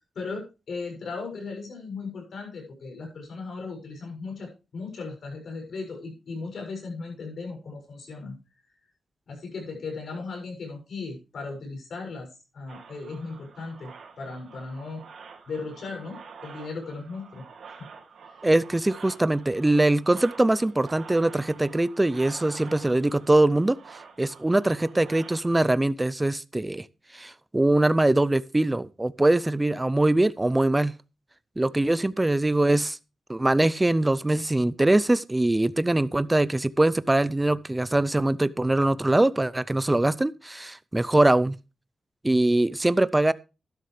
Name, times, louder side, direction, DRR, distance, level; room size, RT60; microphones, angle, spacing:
voice 1, 0.1-8.4 9.3-12.3 12.5-13.9 14.2-15.0 15.5-17.9 18.3-18.4, left 4 dB, 70° left, 6.7 m, -37 dB
sound 1, 12.7-25.7, right 5 dB, 75° right, 2.4 m, -47 dB
voice 2, 18.4-23.8 24.2-26.9 27.1-30.9 31.6-33.0 33.3-41.6 42.2-43.3, right 2 dB, 15° right, 0.6 m, -22 dB
12.5 x 11.5 x 3.3 m
cardioid pair, 70°, 0 cm